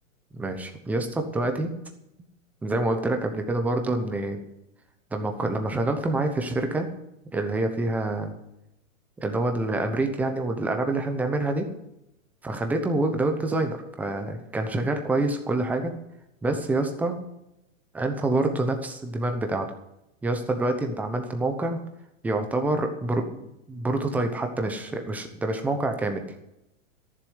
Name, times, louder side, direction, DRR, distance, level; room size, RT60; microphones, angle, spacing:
voice 1, 0.3-1.7 2.6-4.4 5.1-6.9 7.3-8.3 9.2-11.7 12.4-15.9 16.4-17.2 17.9-19.7 20.2-21.8 22.2-26.2, right 2 dB, 5° right, 5 dB, 0.8 m, -27 dB
13.0 x 7.4 x 9.5 m, 0.86 s
hypercardioid pair, 160°, 40 cm